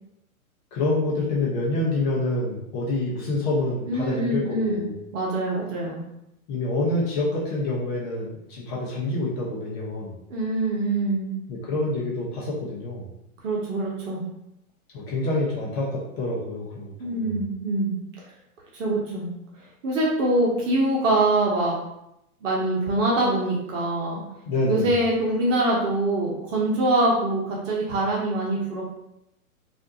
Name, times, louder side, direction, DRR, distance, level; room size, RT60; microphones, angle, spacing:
voice 1, 0.7-4.9 6.5-10.2 11.5-13.1 14.9-17.4 24.5-24.9, left 2 dB, 30° left, -4 dB, 0.6 m, -27 dB
voice 2, 3.9-4.8 5.1-6.0 10.3-11.3 13.4-14.2 17.0-17.9 18.7-19.3 19.8-21.7 22.4-24.2 24.7-28.8, right 2 dB, 60° right, -3 dB, 0.9 m, -24 dB
3.4 x 2.6 x 2.7 m, 0.83 s
hypercardioid pair, 120°, 43 cm